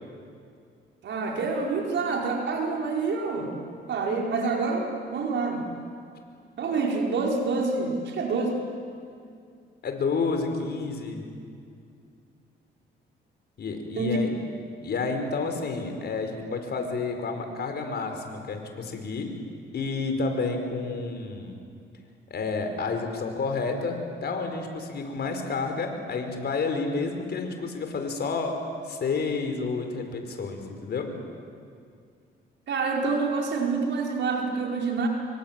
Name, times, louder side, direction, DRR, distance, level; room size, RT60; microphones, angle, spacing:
voice 1, 1.0-3.5 3.9-5.7 6.6-8.6 13.9-14.2 32.7-35.1, right 4 dB, 65° right, 0 dB, 4.9 m, -27 dB
voice 2, 9.8-11.2 13.6-14.3 14.8-19.3 19.7-21.5 22.3-28.5 28.9-31.1, left 4 dB, 55° left, 5 dB, 4.9 m, -30 dB
26.0 x 24.0 x 9.1 m, 2.3 s
cardioid pair, 90°, 20 cm